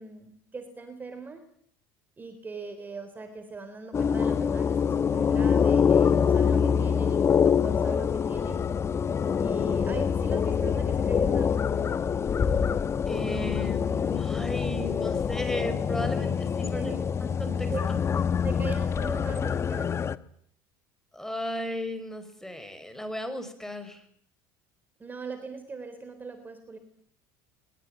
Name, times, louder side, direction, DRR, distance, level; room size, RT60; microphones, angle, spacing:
voice 1, 0.0-1.4 2.2-8.6 9.4-11.9 16.7-17.1 17.7-17.9 18.4-20.0 25.0-26.8, right 4 dB, 20° right, 9 dB, 3.8 m, -40 dB
sound 1, 3.9-20.2, left 7 dB, 30° left, 1.1 m, -25 dB
voice 2, 13.1-17.7 21.1-24.0, left 1 dB, 5° left, 10 dB, 5.5 m, -35 dB
22.0 x 22.0 x 9.2 m, 0.64 s
supercardioid pair, 115°, 10 cm